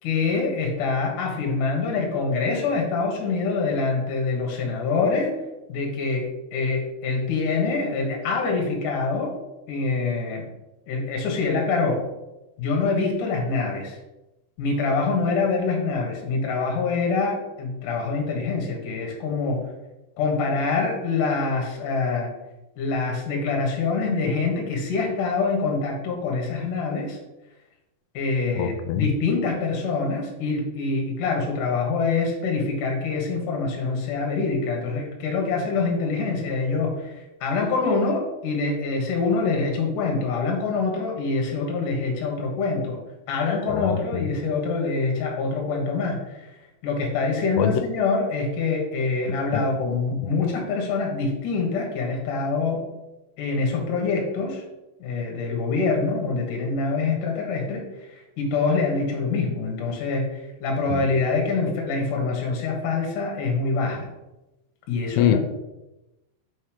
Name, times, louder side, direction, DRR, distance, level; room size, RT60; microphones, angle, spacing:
voice 1, 0.0-5.4 5.7-9.4 9.7-10.5 10.9-12.0 12.6-14.0 14.6-19.7 20.2-22.3 22.8-27.2 28.1-43.0 43.3-46.5 46.8-52.9 53.4-54.6 55.0-57.8 58.1-64.1 64.9-65.4, left 4 dB, 55° left, 1 dB, 2.5 m, -25 dB
voice 2, 28.6-29.1 43.7-44.3 47.6-47.8 49.5-49.6 60.9-61.0 65.2-65.4, left 10 dB, 85° left, 8 dB, 3.1 m, -24 dB
6.2 x 5.5 x 5.0 m, 0.97 s
omnidirectional pair, 5.4 m